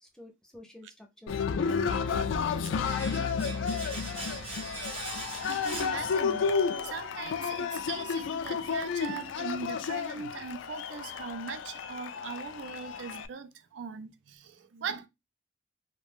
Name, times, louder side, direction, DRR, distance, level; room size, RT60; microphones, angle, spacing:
voice 1, 0.0-4.3, left 1 dB, 5° left, 0.4 m, -51 dB
Cheering, 1.3-13.3, left 6 dB, 85° left, 0.3 m, -32 dB
Domestic sounds home sounds, 2.8-6.7 6.9-7.1, right 2 dB, 30° right, 0.8 m, -41 dB
voice 2, 5.5-6.5 6.8-15.1, right 5 dB, 75° right, 0.4 m, -40 dB
2.4 x 2.1 x 3.3 m
head